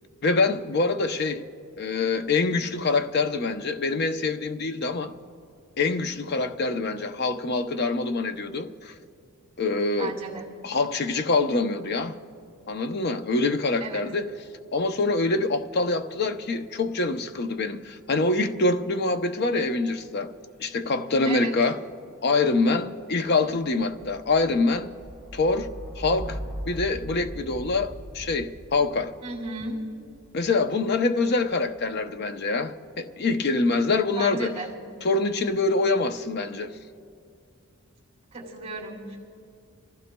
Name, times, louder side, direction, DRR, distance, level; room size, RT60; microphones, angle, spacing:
voice 1, 0.2-1.4 1.8-5.1 5.8-8.9 9.6-10.1 10.6-12.2 12.7-14.3 14.7-20.3 20.6-21.8 22.2-24.9 25.3-25.7 26.0-26.4 26.7-29.1 30.3-34.6 35.0-36.7, left 3 dB, 50° left, 0.6 m, -25 dB
voice 2, 9.9-10.5 13.8-14.0 21.2-21.5 29.2-29.8 34.1-34.7 38.3-39.2, right 3 dB, 30° right, 2.6 m, -35 dB
sound 1, 14.1-15.4 15.7-30.7 31.5-32.1, equal, 5° left, 3.2 m, -43 dB
28.0 x 15.0 x 2.2 m
head